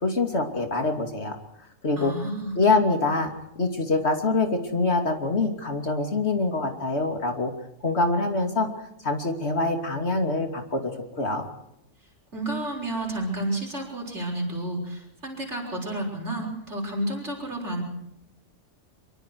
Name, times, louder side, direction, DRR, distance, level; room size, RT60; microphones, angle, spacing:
voice 1, 0.0-1.4 1.8-2.1 2.5-7.5 7.8-8.7 9.0-10.9 11.2-11.5, left 3 dB, 55° left, 5 dB, 3.1 m, -25 dB
voice 2, 2.0-2.6 12.3-17.8, right 1 dB, 60° right, 1 dB, 6.6 m, -31 dB
25.0 x 24.0 x 4.8 m, 0.83 s
omnidirectional pair, 1.3 m